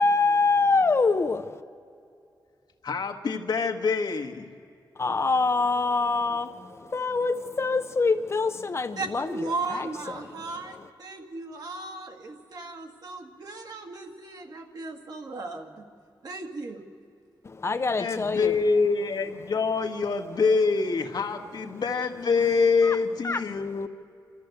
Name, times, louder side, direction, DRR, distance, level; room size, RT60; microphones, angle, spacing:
voice 1, 0.0-1.6 5.0-9.9 10.7-10.8 17.4-18.6 22.8-23.0 23.2-23.6, left 3 dB, 35° left, 9 dB, 0.6 m, -25 dB
voice 2, 2.8-4.4 18.0-23.9, left 4 dB, 65° left, 5 dB, 1.4 m, -25 dB
voice 3, 9.0-15.8 16.2-16.9, right 3 dB, 60° right, 4 dB, 1.9 m, -36 dB
27.0 x 13.5 x 8.1 m, 2.5 s
wide cardioid pair, 110°, 8 cm